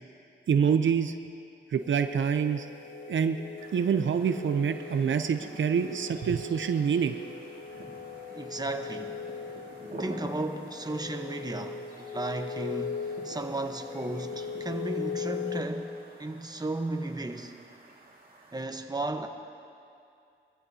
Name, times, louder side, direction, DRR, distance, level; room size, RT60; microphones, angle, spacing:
voice 1, 0.5-1.1 1.7-2.7 3.1-3.4 3.7-7.2, right 7 dB, 75° right, 8 dB, 0.6 m, -26 dB
sound 1, 1.8-15.6, left 6 dB, 70° left, 2.1 m, -39 dB
sound 2, 3.6-18.6, right 2 dB, 50° right, 2.0 m, -49 dB
voice 2, 8.3-9.2 10.0-17.6 18.5-19.3, right 2 dB, 20° right, 5 dB, 1.0 m, -34 dB
22.5 x 14.5 x 2.8 m, 2.5 s
cardioid pair, 65°, 20 cm